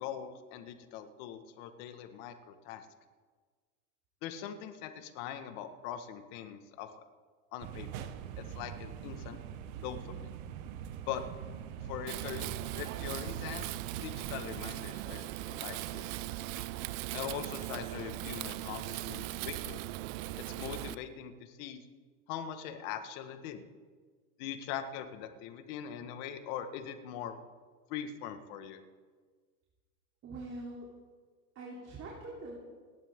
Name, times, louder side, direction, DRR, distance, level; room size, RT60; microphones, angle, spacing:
voice 1, 0.0-2.9 4.2-7.0 7.5-8.1 8.4-9.4 9.8-10.3 11.1-11.2 11.8-13.7 14.0-16.2 17.1-19.8 20.6-21.8 22.3-23.6 24.4-27.4 27.9-28.8, left 9 dB, 60° left, 7 dB, 1.8 m, -42 dB
sound 1, 7.6-14.4, right 9 dB, 70° right, 1.4 m, -43 dB
Wind, 12.1-20.9, right 17 dB, 55° right, 0.6 m, -39 dB
voice 2, 30.2-30.9 31.6-32.5, right 2 dB, 35° right, -3 dB, 3.4 m, -43 dB
29.0 x 11.5 x 3.8 m, 1.5 s
supercardioid pair, 125°, 44 cm